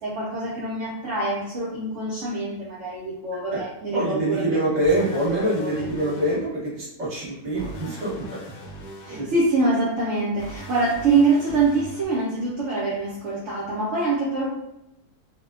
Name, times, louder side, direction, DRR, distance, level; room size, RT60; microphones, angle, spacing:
voice 1, 0.0-4.6 5.5-5.8 9.0-14.5, right 3 dB, 70° right, -6 dB, 0.6 m, -24 dB
voice 2, 3.9-8.4 9.1-9.3, right 1 dB, 35° right, -6 dB, 0.9 m, -25 dB
sound 1, 4.8-6.4 7.6-9.2 10.4-12.1, right 1 dB, 80° left, 1.1 m, -40 dB
2.6 x 2.1 x 2.3 m, 0.88 s
omnidirectional pair, 1.7 m